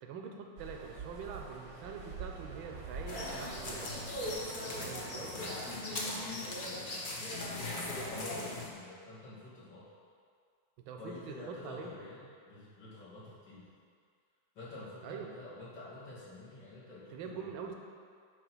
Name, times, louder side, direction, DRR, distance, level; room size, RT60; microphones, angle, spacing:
voice 1, 0.0-4.2 4.8-5.3 10.9-11.9 15.0-15.3 17.1-17.7, right 6 dB, 85° right, 3 dB, 1.5 m, -44 dB
sound 1, 0.6-5.7, right 4 dB, 50° right, 0.9 m, -46 dB
sound 2, 3.1-8.7, left 1 dB, 45° left, 0.6 m, -39 dB
voice 2, 4.4-7.3 8.0-9.8 11.0-13.6 14.5-17.5, left 2 dB, 70° left, -10 dB, 2.9 m, -49 dB
9.1 x 3.2 x 6.1 m, 2.1 s
omnidirectional pair, 2.1 m